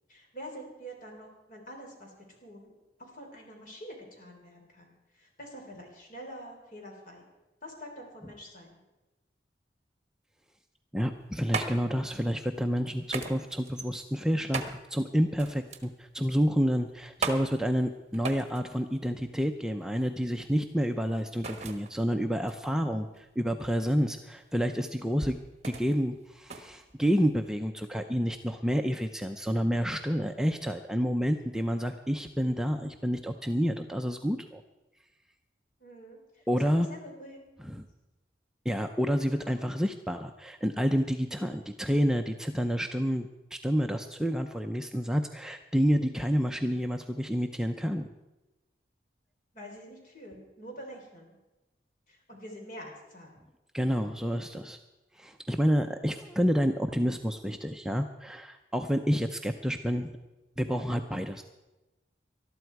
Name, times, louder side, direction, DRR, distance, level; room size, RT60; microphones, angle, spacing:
voice 1, 0.1-2.7 3.0-7.2 7.6-8.8 35.8-37.4 39.3-39.5 49.5-51.4 52.1-53.4, equal, 50° left, 1 dB, 4.0 m, -46 dB
voice 2, 10.9-25.4 25.6-34.6 36.5-36.9 37.7-37.9 38.7-48.1 53.7-54.8 55.2-60.2 60.6-61.4, equal, 5° right, 5 dB, 0.5 m, -29 dB
sound 1, 11.0-27.6, right 4 dB, 40° right, 1.3 m, -40 dB
20.0 x 12.5 x 4.7 m, 1.1 s
head